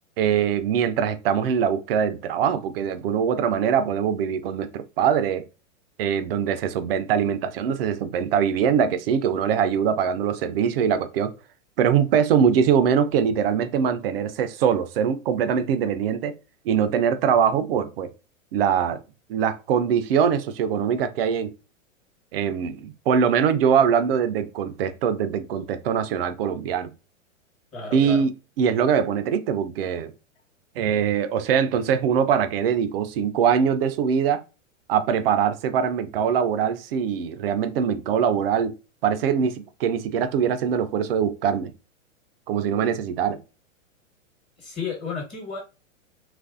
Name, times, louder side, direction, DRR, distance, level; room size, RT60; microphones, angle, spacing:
voice 1, 0.2-5.5 6.0-11.3 11.8-16.3 16.7-18.1 18.5-19.0 19.3-21.5 22.3-26.9 27.9-28.3 28.6-30.1 30.8-34.4 34.9-38.7 39.0-41.7 42.5-43.4, right 7 dB, 50° right, 0.4 m, -22 dB
voice 2, 27.7-28.2 44.6-45.6, left 5 dB, 25° left, 1.2 m, -32 dB
3.0 x 2.5 x 2.4 m
hypercardioid pair, 115°, 39 cm